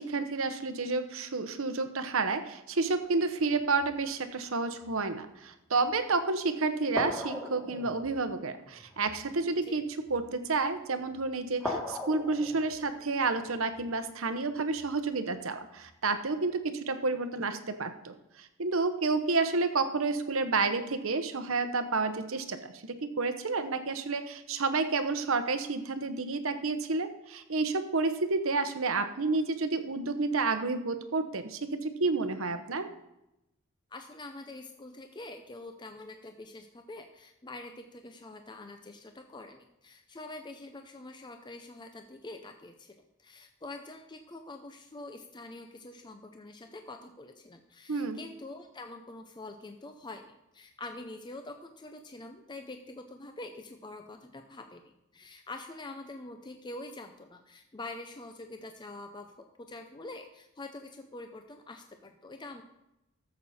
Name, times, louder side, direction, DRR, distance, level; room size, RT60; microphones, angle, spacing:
voice 1, 0.0-32.9 47.9-48.2, right 3 dB, 65° right, 9 dB, 0.9 m, -30 dB
sound 1, 2.9-4.1 4.7-5.0 5.8-5.9 6.9-10.5 11.0-11.2 11.6-15.1 15.7-15.9, left 1 dB, 5° left, 1.9 m, -41 dB
voice 2, 33.9-59.3 59.7-62.6, left 2 dB, 20° left, 6 dB, 0.6 m, -45 dB
14.0 x 7.4 x 4.2 m, 0.89 s
head